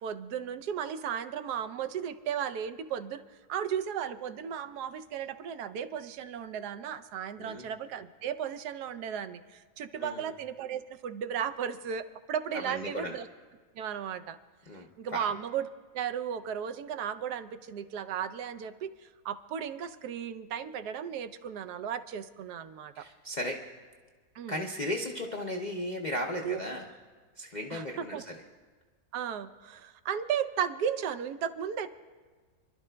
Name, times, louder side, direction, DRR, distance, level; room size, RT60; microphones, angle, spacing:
voice 1, 0.0-3.2 3.5-13.3 13.8-14.4 15.0-15.7 15.9-18.9 19.2-23.0 24.3-24.6 26.4-26.6 27.7-28.2 29.1-31.9, right 8 dB, 85° right, 10 dB, 1.2 m, -35 dB
voice 2, 10.0-10.3 12.5-13.2 14.7-15.3 22.9-23.6 24.5-26.9 27.4-28.4, left 1 dB, 55° left, 0 dB, 0.5 m, -36 dB
29.0 x 11.5 x 2.2 m, 1.5 s
omnidirectional pair, 1.7 m